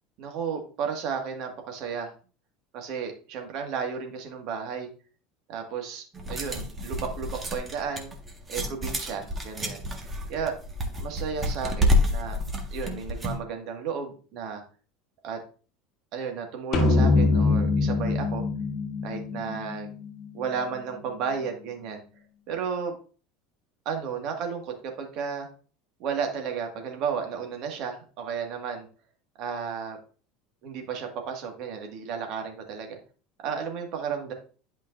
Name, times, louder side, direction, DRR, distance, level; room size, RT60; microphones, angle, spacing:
voice 1, 0.2-2.1 2.7-4.9 5.5-8.1 8.5-9.9 10.3-10.5 11.0-12.4 12.7-14.6 15.2-15.4 16.1-18.4 19.0-19.9 20.3-22.0 22.5-23.0 23.9-25.5 26.0-28.9 29.4-30.0 30.6-33.0 33.4-34.3, right 6 dB, 50° right, 3 dB, 1.9 m, -33 dB
sound 1, 6.1-13.4, left 1 dB, 20° right, 1.7 m, -29 dB
sound 2, 16.7-20.2, left 3 dB, 45° left, 1.7 m, -24 dB
11.0 x 5.2 x 2.6 m, 0.38 s
figure-of-eight pair, 70°, 0 cm